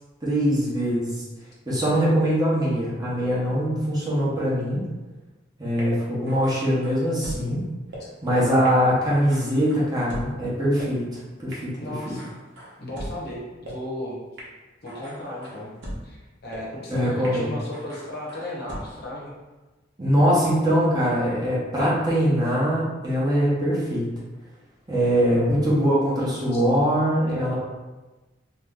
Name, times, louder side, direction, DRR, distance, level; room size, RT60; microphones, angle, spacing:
voice 1, 0.2-1.2 1.7-4.8 5.6-7.7 8.2-11.7 12.1-12.2 16.9-17.5 20.0-24.1 24.9-27.6, equal, 20° right, -7 dB, 0.8 m, -22 dB
sound 1, 5.8-5.9 6.3-7.4 7.9-8.0 8.7-8.8 9.1-10.3 10.8-10.9 11.5-11.6 12.0-13.1 13.7-13.8 14.4-14.5 14.9-16.0 16.5-16.6 17.2-17.3 17.7-18.8, equal, 65° right, 0.8 m, -39 dB
voice 2, 11.8-12.3 12.8-14.2 14.8-15.7 16.0-16.2 16.4-19.3, left 1 dB, 55° left, -4 dB, 0.8 m, -34 dB
2.8 x 2.1 x 3.6 m, 1.2 s
head